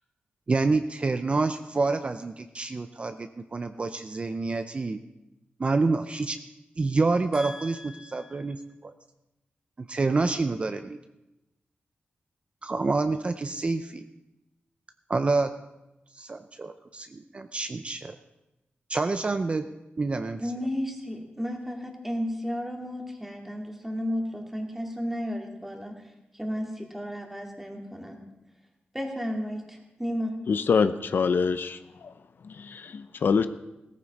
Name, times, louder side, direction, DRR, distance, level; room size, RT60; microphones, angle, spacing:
voice 1, 0.5-5.0 5.6-6.4 6.8-8.9 9.9-11.0 12.6-14.1 15.1-15.5 16.1-18.1 18.9-19.6 20.0-20.4, right 3 dB, 30° right, 9 dB, 0.5 m, -27 dB
voice 2, 7.3-8.4 20.4-26.0 26.3-28.2 28.9-30.4, equal, 5° right, 1 dB, 2.1 m, -33 dB
voice 3, 30.5-32.1 32.4-33.5, left 5 dB, 65° left, 11 dB, 0.6 m, -25 dB
17.5 x 14.5 x 4.1 m, 0.95 s
wide cardioid pair, 160°, 4 cm